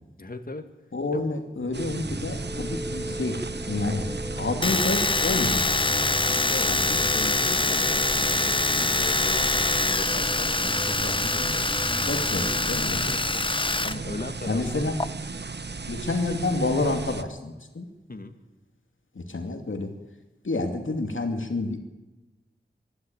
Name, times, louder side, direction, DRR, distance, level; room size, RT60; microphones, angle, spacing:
voice 1, 0.2-0.6 1.1-1.2 3.1-3.3 6.5-8.6 8.9-11.9 12.9-14.9 18.1-18.3, left 2 dB, 45° left, 6 dB, 1.9 m, -38 dB
voice 2, 0.9-4.1 4.4-5.9 6.7-6.8 8.8-8.9 11.2-11.5 12.1-13.0 14.5-15.0 15.9-17.9 19.1-19.9 20.4-21.8, left 2 dB, 80° left, 4 dB, 2.5 m, -29 dB
sound 1, 1.7-17.2, right 4 dB, 60° right, 1.0 m, -36 dB
sound 2, 2.0-14.0, equal, 5° right, 3.9 m, -36 dB
Domestic sounds home sounds, 4.6-14.0 14.2-15.1, left 2 dB, 25° left, 0.7 m, -25 dB
25.0 x 12.0 x 8.9 m, 1.1 s
wide cardioid pair, 45°, 20 cm